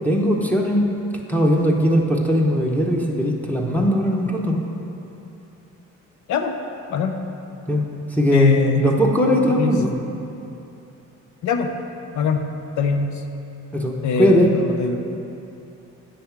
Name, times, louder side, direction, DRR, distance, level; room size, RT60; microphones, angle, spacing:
voice 1, 0.0-0.8 1.3-4.6 7.7-7.8 8.1-8.5 8.8-9.9 13.7-14.5, equal, 5° left, -1 dB, 0.7 m, -19 dB
voice 2, 8.3-8.8 9.6-9.7 11.4-11.7 12.1-12.4 12.8-13.2 14.0-15.0, left 6 dB, 70° left, 6 dB, 0.7 m, -21 dB
8.6 x 3.5 x 5.8 m, 2.8 s
cardioid pair, 90°, 30 cm